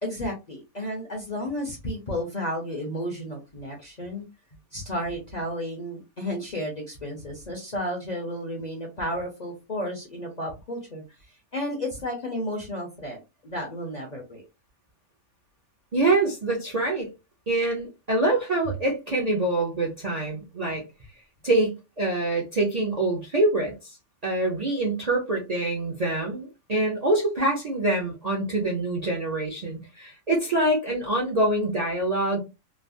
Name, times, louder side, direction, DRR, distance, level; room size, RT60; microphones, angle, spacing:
voice 1, 0.0-4.3 4.7-11.0 11.5-14.4, equal, 40° left, 0.6 m, -32 dB
voice 2, 15.9-17.1 17.5-20.8 21.4-24.0 24.2-32.4, right 2 dB, 40° right, 0.5 m, -25 dB
3.2 x 2.0 x 2.5 m
omnidirectional pair, 1.5 m